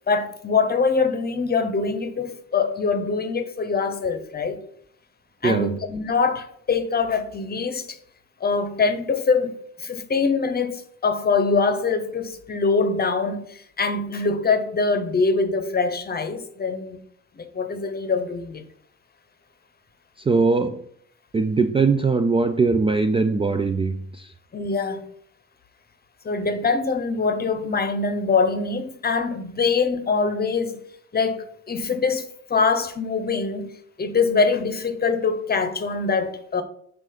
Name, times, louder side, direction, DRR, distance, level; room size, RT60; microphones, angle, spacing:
voice 1, 0.1-4.6 5.4-8.0 8.4-17.0 17.3-18.6 24.5-25.1 26.2-30.8 31.1-32.2 32.5-33.7 34.0-36.6, left 4 dB, 30° left, 0.8 m, -23 dB
voice 2, 20.2-20.8 21.3-24.3, right 4 dB, 20° right, 0.3 m, -21 dB
7.4 x 2.5 x 5.0 m
cardioid pair, 90°, 30 cm